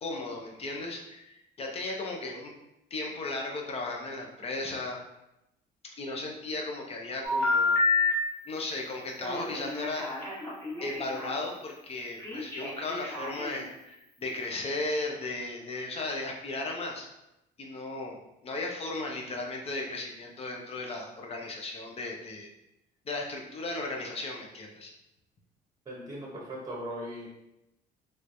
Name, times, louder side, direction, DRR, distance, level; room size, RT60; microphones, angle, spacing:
voice 1, 0.0-2.5 2.9-5.0 5.8-7.8 8.5-10.4 10.8-17.1 17.6-18.2 18.4-22.5 23.1-24.9, left 2 dB, 35° left, 1 dB, 0.7 m, -36 dB
Telephone, 7.2-8.1 9.2-11.3 12.2-13.6, left 3 dB, 15° left, 1.3 m, -29 dB
voice 2, 25.9-27.3, equal, 20° right, -2 dB, 0.9 m, -38 dB
3.3 x 3.1 x 2.6 m, 0.89 s
cardioid pair, 110°, 17 cm